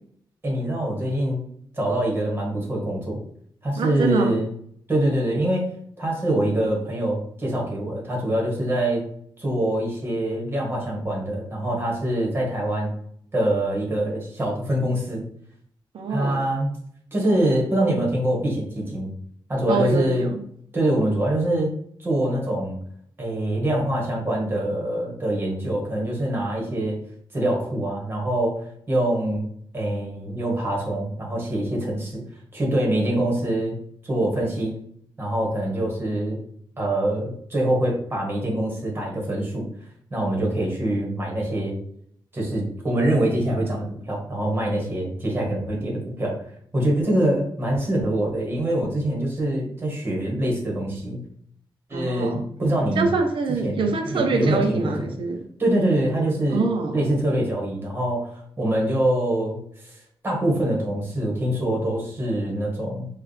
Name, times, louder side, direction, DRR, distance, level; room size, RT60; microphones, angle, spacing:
voice 1, 0.4-1.4 1.7-3.2 3.6-4.5 4.9-5.7 6.0-9.0 9.4-12.9 13.3-15.2 16.1-16.7 17.1-19.1 19.5-20.3 20.7-21.7 22.0-22.8 23.2-27.0 27.3-28.6 28.9-29.5 29.7-32.2 32.5-33.8 34.1-34.8 35.2-36.4 36.8-39.7 40.1-41.8 42.3-46.4 46.7-51.2 51.9-53.1 53.6-54.9 55.6-56.7 56.9-59.9 60.2-63.1, right 1 dB, 25° right, -2 dB, 1.5 m, -24 dB
voice 2, 3.8-4.3 15.9-16.5 19.7-20.4 51.9-52.4 53.0-55.4 56.5-57.0, right 4 dB, 85° right, 4 dB, 0.7 m, -25 dB
4.8 x 2.5 x 3.3 m, 0.65 s
wide cardioid pair, 130°, 9 cm